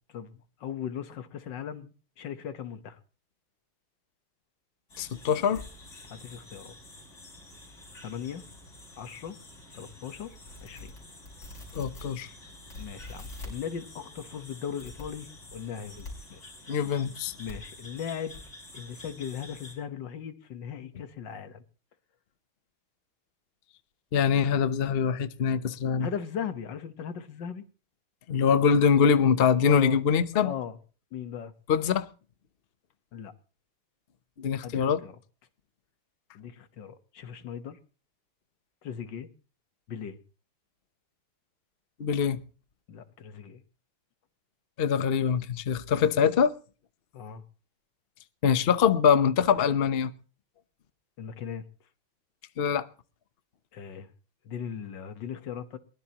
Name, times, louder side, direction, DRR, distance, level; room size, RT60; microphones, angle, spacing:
voice 1, 0.1-3.0 6.1-6.8 8.0-8.4 9.0-9.4 9.7-10.4 10.6-10.9 12.8-16.8 17.4-18.4 18.7-21.6 26.0-27.6 29.6-30.0 30.3-30.8 31.1-31.5 33.1-33.3 34.6-35.2 36.3-37.8 38.8-39.3 39.9-40.2 42.9-43.6 47.1-47.4 51.2-51.6 53.7-54.1 54.5-55.8, left 8 dB, 60° left, 1.8 m, -38 dB
sound 1, 4.9-19.7, left 2 dB, 40° left, 6.5 m, -46 dB
voice 2, 5.0-5.6 11.7-12.3 16.7-17.3 24.1-26.1 28.3-30.5 31.7-32.1 34.4-35.0 42.0-42.4 44.8-46.5 48.4-50.1 52.6-52.9, left 7 dB, 90° left, 0.5 m, -24 dB
22.5 x 20.0 x 3.0 m
omnidirectional pair, 2.4 m